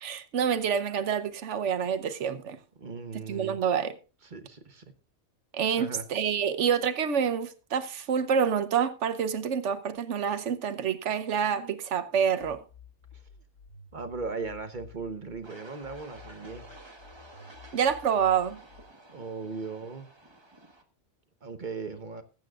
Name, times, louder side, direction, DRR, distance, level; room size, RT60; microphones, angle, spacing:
voice 1, 0.0-2.6 3.3-4.0 5.5-12.6 17.7-18.6, right 7 dB, 60° right, 1.2 m, -27 dB
voice 2, 2.8-3.6 4.2-4.9 5.8-6.1 13.1-13.2 13.9-16.7 19.1-20.1 21.4-22.2, right 4 dB, 40° right, 1.1 m, -38 dB
sound 1, 12.4-15.4 15.8-18.8, left 6 dB, 55° left, 3.4 m, -52 dB
sound 2, 15.4-20.8, right 2 dB, 20° right, 1.4 m, -51 dB
21.0 x 8.7 x 2.4 m
omnidirectional pair, 1.4 m